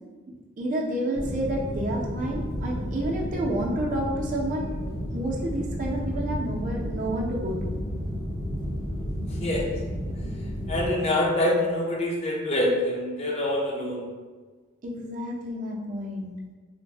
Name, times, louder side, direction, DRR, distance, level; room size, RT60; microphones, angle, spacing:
voice 1, 0.6-4.7 5.1-7.7 14.8-16.3, right 1 dB, 40° right, -2 dB, 0.4 m, -30 dB
sound 1, 1.1-10.9, equal, 75° left, 0.8 m, -32 dB
voice 2, 10.7-14.1, left 1 dB, 30° left, -2 dB, 0.4 m, -25 dB
2.5 x 2.0 x 3.1 m, 1.4 s
head